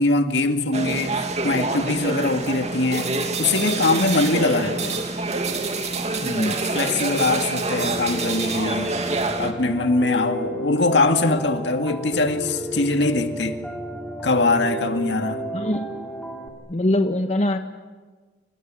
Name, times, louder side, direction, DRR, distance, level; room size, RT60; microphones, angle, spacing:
voice 1, 0.0-5.0 6.7-8.9 9.4-13.6 14.2-15.5, left 2 dB, 70° left, 2.2 m, -22 dB
sound 1, 0.7-9.5, right 3 dB, 40° right, 2.5 m, -26 dB
voice 2, 6.2-6.6 15.5-15.9 16.7-17.6, left 1 dB, 40° left, 1.3 m, -23 dB
Piano, 7.8-16.5, right 1 dB, 5° left, 3.1 m, -32 dB
28.5 x 26.5 x 7.7 m
head